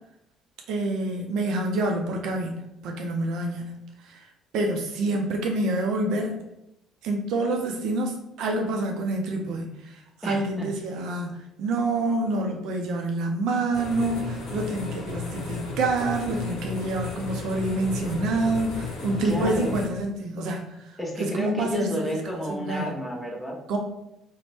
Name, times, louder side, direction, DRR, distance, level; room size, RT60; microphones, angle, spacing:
voice 1, 0.7-3.7 4.0-4.2 4.5-6.3 7.0-9.9 10.2-20.8 21.2-22.1 22.6-22.9 23.7-23.8, right 2 dB, 70° right, 2 dB, 0.4 m, -27 dB
voice 2, 10.2-10.7 19.0-19.7 21.0-23.6, equal, 10° left, -1 dB, 0.8 m, -31 dB
sound 1, 13.7-19.9, left 4 dB, 70° left, 0.7 m, -34 dB
2.5 x 2.0 x 3.2 m, 0.83 s
hypercardioid pair, 55°, 0 cm